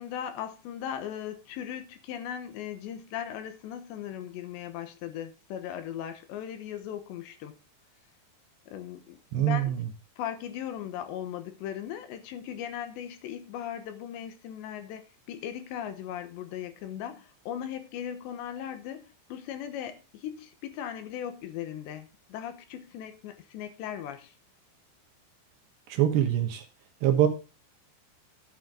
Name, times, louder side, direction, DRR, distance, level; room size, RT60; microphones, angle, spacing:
voice 1, 0.0-7.5 8.7-9.8 10.2-15.0 15.3-24.3, left 10 dB, 75° left, 3.2 m, -38 dB
voice 2, 9.3-9.8 25.9-26.6 27.0-27.3, right 11 dB, 70° right, 3.3 m, -24 dB
11.5 x 9.2 x 3.8 m
omnidirectional pair, 5.4 m